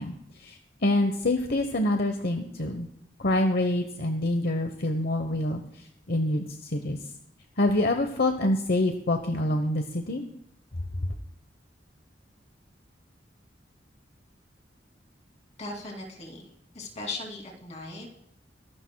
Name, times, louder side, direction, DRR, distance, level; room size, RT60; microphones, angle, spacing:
voice 1, 0.0-2.9 3.2-7.0 7.6-10.2, left 1 dB, 60° left, 5 dB, 1.1 m, -26 dB
voice 2, 15.6-16.4 16.7-18.2, left 2 dB, 40° left, 1 dB, 2.9 m, -38 dB
23.5 x 12.0 x 2.3 m, 0.74 s
head